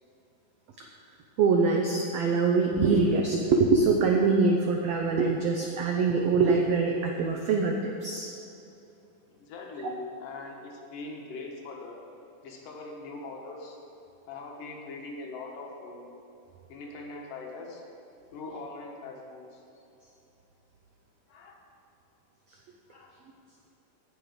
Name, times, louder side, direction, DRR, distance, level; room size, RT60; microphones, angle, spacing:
voice 1, 1.4-8.3, right 4 dB, 85° right, 2 dB, 1.4 m, -24 dB
voice 2, 9.3-12.0 12.4-13.8 14.3-16.1 16.7-17.8 18.3-19.6 21.3-21.6 22.9-23.1, left 3 dB, 75° left, -1 dB, 2.9 m, -41 dB
17.0 x 5.9 x 5.0 m, 2.8 s
omnidirectional pair, 3.9 m